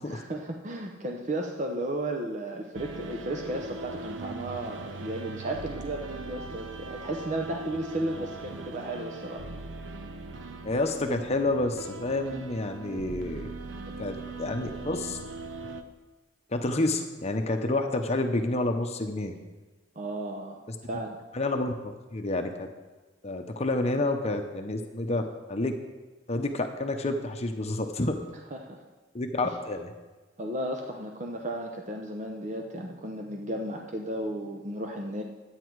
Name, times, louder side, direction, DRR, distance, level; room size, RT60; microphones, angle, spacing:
voice 1, 0.1-9.5 20.0-20.6 20.9-21.2 28.5-28.8 30.4-35.2, right 1 dB, 40° right, 2 dB, 0.8 m, -34 dB
sound 1, 2.7-15.8, right 3 dB, 70° right, 0.7 m, -40 dB
voice 2, 10.6-13.5 14.0-15.2 16.5-19.4 21.3-22.7 23.2-25.7 26.3-28.2 29.1-29.9, left 2 dB, 35° left, 5 dB, 0.8 m, -29 dB
11.5 x 9.0 x 4.7 m, 1.2 s
head